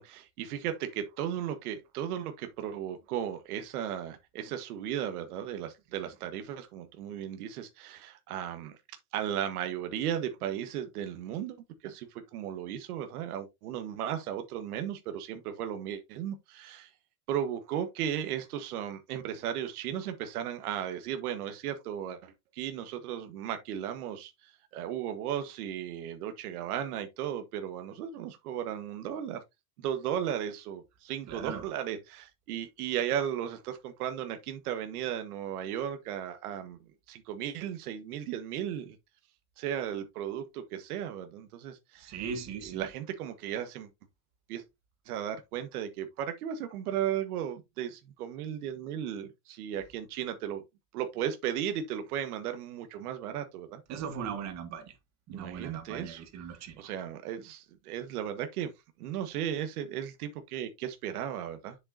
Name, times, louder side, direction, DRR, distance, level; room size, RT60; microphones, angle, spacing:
voice 1, 0.0-8.8 9.1-11.6 11.8-16.9 17.3-29.4 29.8-36.8 37.1-39.0 39.6-42.2 42.6-43.9 44.5-44.6 45.0-50.6 50.9-53.8 55.3-56.2 56.8-58.7 59.0-61.8, right 10 dB, 80° right, 1.5 m, -35 dB
voice 2, 31.3-31.6 42.0-42.8 53.9-54.9 55.3-56.8, right 6 dB, 40° right, 1.6 m, -38 dB
7.8 x 6.7 x 2.7 m
supercardioid pair, 145°, 44 cm